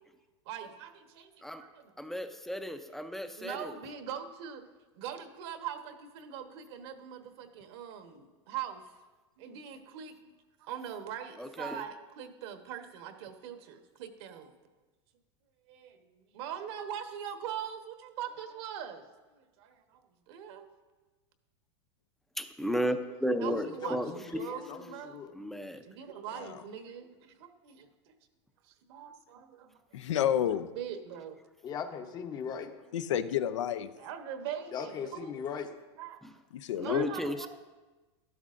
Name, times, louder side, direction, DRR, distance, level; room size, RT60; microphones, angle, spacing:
voice 1, 0.4-1.9 3.4-4.6 4.9-9.0 9.4-14.5 15.7-20.7 22.7-23.1 23.4-25.3 25.8-28.1 28.6-29.8 30.7-31.4 33.8-35.3 36.0-36.2 36.8-37.5, right 9 dB, 60° right, 6 dB, 1.2 m, -42 dB
voice 2, 2.0-3.7 11.4-11.8 22.4-24.4 25.3-25.8 36.2-36.3 36.8-37.5, equal, ahead, 8 dB, 0.5 m, -34 dB
voice 3, 23.5-25.3 31.6-32.7 34.7-35.7, left 7 dB, 25° left, 7 dB, 0.8 m, -39 dB
voice 4, 29.9-30.7 32.9-33.9 36.5-37.1, left 10 dB, 90° left, 12 dB, 0.6 m, -29 dB
12.5 x 12.0 x 2.5 m, 1.2 s
supercardioid pair, 140°, 15 cm